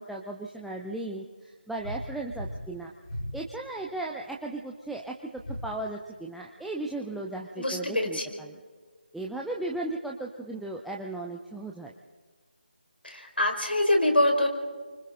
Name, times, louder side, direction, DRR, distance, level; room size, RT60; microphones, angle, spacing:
voice 1, 0.0-2.9 3.3-8.6 9.1-11.9, right 2 dB, ahead, -2 dB, 0.5 m, -36 dB
sound 1, 1.8-2.0 2.3-2.6 3.0-3.3 5.4-5.6, equal, 45° left, 6.3 m, -36 dB
voice 2, 7.6-8.4 13.0-14.5, left 1 dB, 80° left, 3 dB, 4.8 m, -25 dB
28.5 x 25.0 x 3.8 m, 1.5 s
figure-of-eight pair, 160°, 5 cm